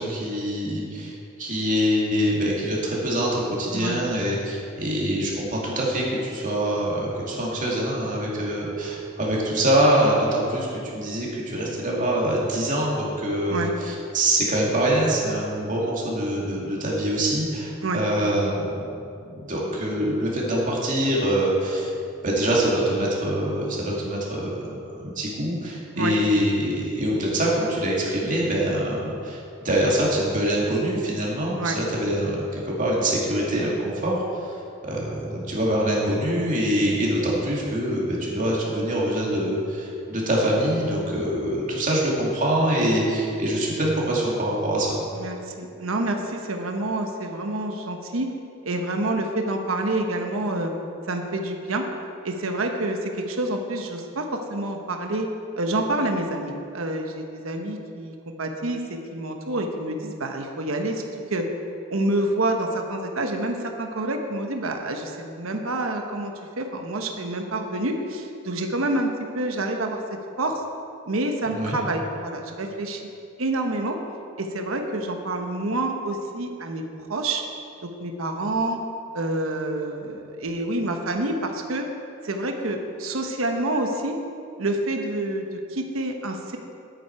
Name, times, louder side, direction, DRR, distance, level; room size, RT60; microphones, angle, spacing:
voice 1, 0.0-21.9 22.2-34.2 34.8-44.9 71.5-71.8, right 1 dB, 40° right, -4 dB, 2.4 m, -24 dB
voice 2, 45.1-48.3 48.6-50.7 51.0-51.9 52.2-55.3 55.5-61.0 61.3-61.5 61.9-70.0 70.4-70.6 71.1-73.0 73.4-74.0 74.4-76.8 77.1-77.4 77.8-78.8 79.1-81.9 82.2-84.2 84.6-86.6, right 2 dB, 85° right, 4 dB, 1.0 m, -27 dB
10.5 x 9.1 x 4.6 m, 2.5 s
head